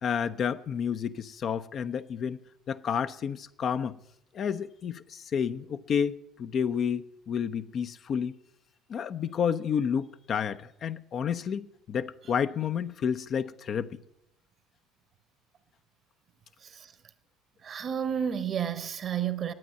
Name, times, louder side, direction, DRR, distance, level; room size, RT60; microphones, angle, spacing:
voice 1, 0.0-2.4 2.7-4.0 4.3-8.4 8.9-14.0, left 7 dB, 45° left, 0.6 m, -30 dB
voice 2, 17.6-19.5, right 8 dB, 40° right, 1.1 m, -31 dB
11.0 x 9.2 x 9.6 m
figure-of-eight pair, 60°, 0 cm